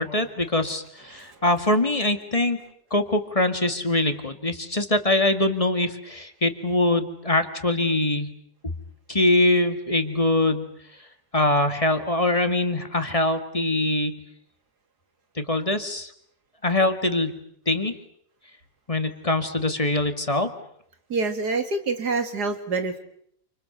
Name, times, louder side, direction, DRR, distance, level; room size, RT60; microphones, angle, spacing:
voice 1, 0.0-2.6 2.9-8.3 9.1-10.7 11.3-14.2 15.4-16.1 16.6-17.3 17.7-17.9 18.9-20.5, left 2 dB, 20° left, 7 dB, 2.1 m, -23 dB
voice 2, 21.1-23.0, right 3 dB, 85° right, 7 dB, 3.0 m, -26 dB
28.5 x 27.0 x 6.9 m, 0.69 s
omnidirectional pair, 1.7 m